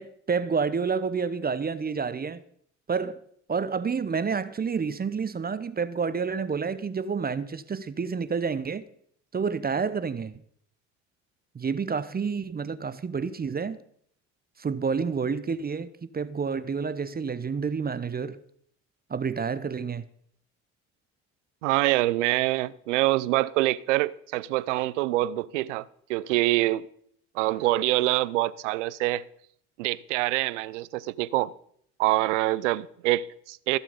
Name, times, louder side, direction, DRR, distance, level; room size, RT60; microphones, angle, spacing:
voice 1, 0.0-2.4 2.9-3.2 3.5-8.8 9.3-10.3 11.5-13.8 14.6-18.4 19.1-20.0, right 5 dB, 25° right, 0.8 m, -29 dB
voice 2, 21.6-26.9 27.3-29.2 29.8-31.5 32.0-33.8, right 17 dB, 90° right, 0.5 m, -25 dB
15.0 x 7.4 x 5.2 m
hypercardioid pair, 60°, 35 cm